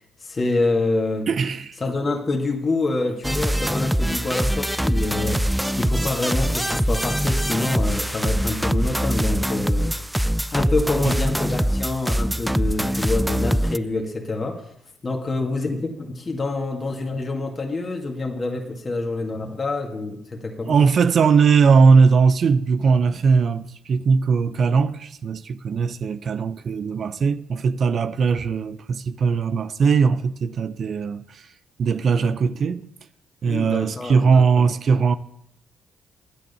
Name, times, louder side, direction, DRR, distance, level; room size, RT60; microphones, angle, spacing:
voice 1, 0.2-1.3 1.8-9.9 10.5-14.6 15.0-20.8 33.5-34.7, left 2 dB, 35° left, 2.0 m, -26 dB
voice 2, 1.3-1.8 11.0-11.2 20.6-31.4 31.8-32.8 33.4-35.2, right 5 dB, 55° right, 0.6 m, -19 dB
sound 1, 3.2-13.8, equal, 5° right, 0.4 m, -23 dB
10.0 x 9.2 x 7.0 m
supercardioid pair, 70°, 0 cm